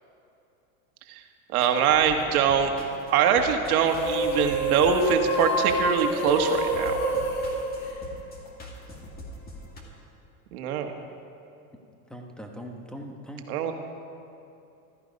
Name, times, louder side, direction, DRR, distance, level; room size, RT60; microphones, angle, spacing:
sound 1, 1.5-9.8, left 1 dB, 20° left, 1.9 m, -43 dB
voice 1, 1.5-2.7 3.1-7.0 10.5-10.9 13.5-13.7, right 7 dB, 80° right, 5 dB, 1.7 m, -23 dB
sound 2, 3.8-8.6, right 1 dB, 70° left, 3.2 m, -27 dB
voice 2, 12.1-13.4, equal, ahead, 2 dB, 1.1 m, -40 dB
15.0 x 13.5 x 5.3 m, 2.7 s
supercardioid pair, 150°, 43 cm